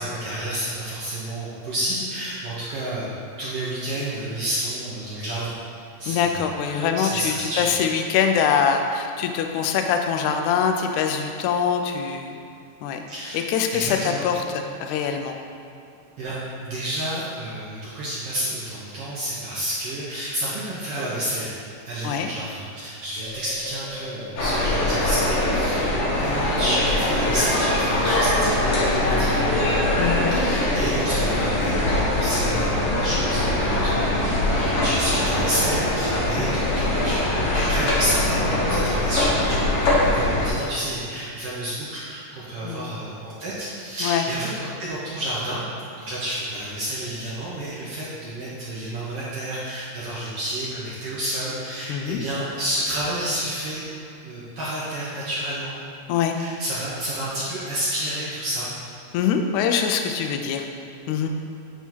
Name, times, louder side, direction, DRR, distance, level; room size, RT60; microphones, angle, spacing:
voice 1, 0.0-3.1 3.4-5.5 6.0-7.7 13.1-13.4 13.7-14.3 16.2-21.5 21.8-29.6 30.3-39.7 40.0-45.6 45.9-53.9 54.2-55.7 56.4-58.7, right 1 dB, 65° right, -8 dB, 1.5 m, -30 dB
voice 2, 6.1-12.4 12.8-13.0 13.3-14.0 14.2-15.4 22.0-22.3 30.0-30.2 36.3-36.6 42.6-42.9 44.0-44.3 51.9-52.2 56.1-56.4 59.1-60.7 61.1-61.3, left 7 dB, 85° left, 5 dB, 1.7 m, -23 dB
sound 1, 23.2-33.6, equal, 80° right, 3.3 m, -37 dB
sound 2, 24.4-40.5, left 1 dB, 60° left, 1.5 m, -22 dB
9.9 x 3.5 x 4.5 m, 2.5 s
omnidirectional pair, 4.0 m